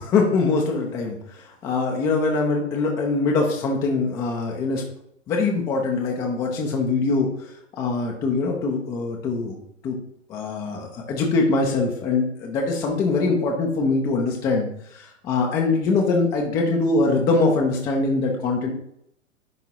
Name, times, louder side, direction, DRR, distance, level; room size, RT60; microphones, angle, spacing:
voice 1, 0.0-4.8 5.3-9.6 9.8-10.0 10.3-18.7, left 3 dB, 10° left, 1 dB, 0.4 m, -23 dB
10.0 x 3.5 x 2.8 m, 0.73 s
hypercardioid pair, 120°, 39 cm